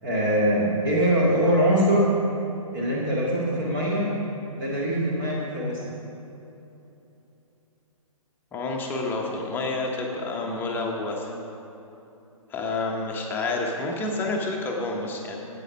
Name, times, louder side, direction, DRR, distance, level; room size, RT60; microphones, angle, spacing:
voice 1, 0.0-2.1 2.7-4.1 4.6-5.8, equal, 35° right, -5 dB, 1.9 m, -23 dB
voice 2, 8.5-11.3 12.5-15.4, left 2 dB, 10° left, 0 dB, 1.0 m, -29 dB
11.5 x 8.5 x 5.2 m, 2.9 s
figure-of-eight pair, 130°, 19 cm